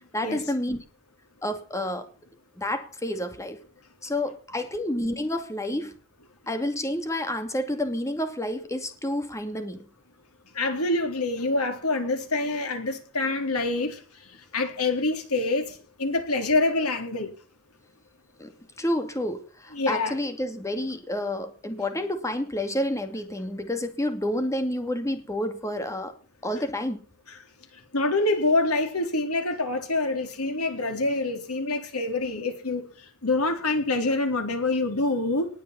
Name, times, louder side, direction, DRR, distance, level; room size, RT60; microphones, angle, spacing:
voice 1, 0.1-0.8 1.4-2.1 2.6-3.6 4.0-5.9 6.5-9.8 18.4-18.5 18.8-26.1 26.4-27.0, left 1 dB, 15° left, 2.4 m, -29 dB
voice 2, 10.5-14.0 14.5-17.3 19.7-20.1 27.9-32.9 33.2-35.5, left 2 dB, 85° left, 4.1 m, -26 dB
19.5 x 7.3 x 8.5 m
head